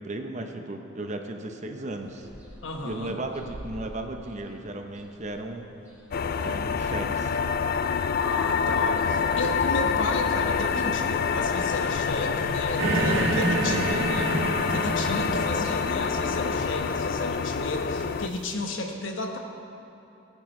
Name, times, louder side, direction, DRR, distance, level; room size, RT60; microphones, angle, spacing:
voice 1, 0.0-2.3 2.8-5.7 6.3-7.4, right 2 dB, 35° right, 4 dB, 0.8 m, -35 dB
sound 1, 1.9-13.1, right 1 dB, 10° right, 3.1 m, -46 dB
voice 2, 2.6-3.2 8.2-19.4, left 2 dB, 80° left, 3 dB, 1.2 m, -33 dB
sound 2, 6.1-18.3, left 6 dB, 50° left, 0.3 m, -27 dB
sound 3, 12.8-18.4, right 2 dB, 80° right, 1.4 m, -29 dB
18.5 x 9.8 x 3.2 m, 2.9 s
head